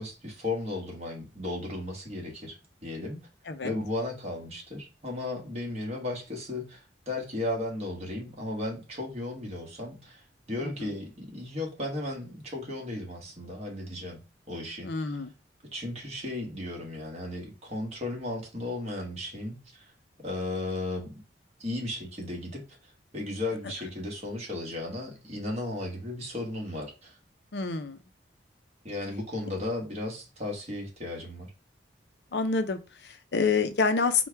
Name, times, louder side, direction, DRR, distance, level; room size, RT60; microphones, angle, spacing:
voice 1, 0.0-3.2 3.6-14.2 14.5-15.2 15.7-19.9 20.2-21.1 21.6-27.2 28.8-31.5, left 2 dB, 35° right, 0 dB, 1.3 m, -35 dB
voice 2, 3.5-3.8 10.6-10.9 14.8-15.3 27.5-28.0 32.3-34.3, left 4 dB, 70° left, 9 dB, 0.6 m, -28 dB
4.4 x 2.3 x 4.5 m, 0.30 s
head